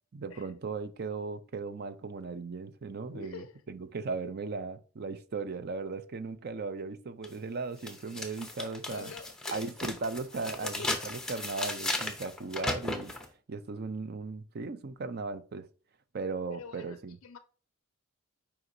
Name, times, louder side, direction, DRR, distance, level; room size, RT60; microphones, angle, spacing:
voice 1, 0.1-9.1 9.5-13.1 13.5-15.7 16.1-17.2, right 4 dB, 45° right, 0.5 m, -37 dB
voice 2, 3.1-3.6 8.9-9.9 10.4-10.9 16.5-17.4, left 5 dB, 65° left, 0.4 m, -46 dB
sound 1, 7.2-7.3 7.8-13.3, left 2 dB, 5° left, 0.8 m, -36 dB
8.0 x 4.9 x 2.7 m
head